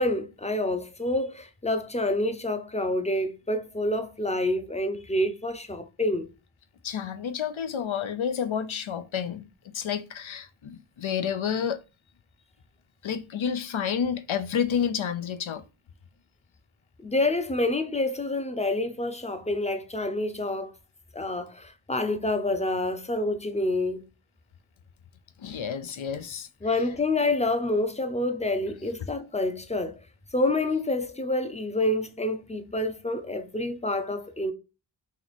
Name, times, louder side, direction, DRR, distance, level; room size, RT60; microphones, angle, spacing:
voice 1, 0.0-6.3 17.0-20.7 21.1-24.0 26.6-30.0 30.3-34.5, left 2 dB, 15° left, 0.6 m, -27 dB
voice 2, 6.8-11.8 13.0-15.6 25.4-26.5, left 7 dB, 75° left, 0.6 m, -30 dB
3.2 x 2.9 x 4.0 m
wide cardioid pair, 50°, 48 cm